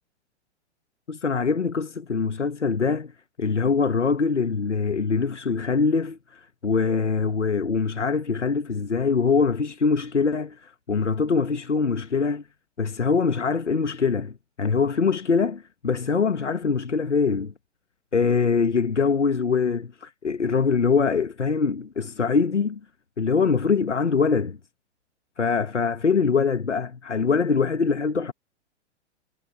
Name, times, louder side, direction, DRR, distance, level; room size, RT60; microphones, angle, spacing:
voice 1, 1.1-3.1 3.4-12.4 12.8-17.5 18.1-22.8 23.2-24.6 25.4-28.3, left 5 dB, 85° left, 1.8 m, -23 dB
figure-of-eight pair, 105°, 34 cm